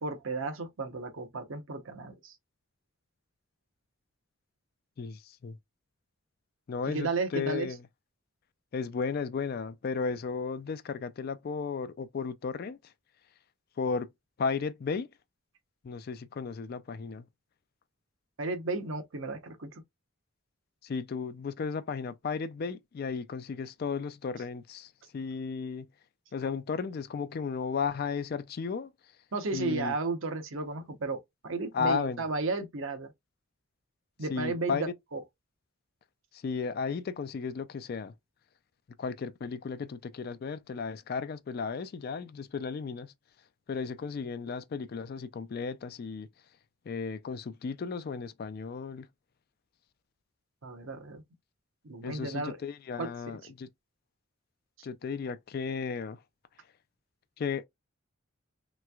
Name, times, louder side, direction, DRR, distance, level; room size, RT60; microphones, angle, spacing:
voice 1, 0.0-2.3 6.9-7.7 18.4-19.7 29.3-33.1 34.2-35.2 50.6-51.2 51.8-52.6 53.0-53.1, right 3 dB, 70° right, 0.8 m, -34 dB
voice 2, 5.0-5.6 6.7-7.8 8.7-12.8 13.8-14.1 14.4-15.1 15.8-17.3 20.8-25.9 26.3-28.9 29.5-29.9 31.7-32.2 34.3-34.8 36.3-38.1 39.0-43.1 43.7-46.3 46.9-49.1 52.0-53.7 54.8-56.2 57.4-57.7, left 5 dB, 45° left, 0.3 m, -34 dB
3.3 x 3.0 x 2.2 m
head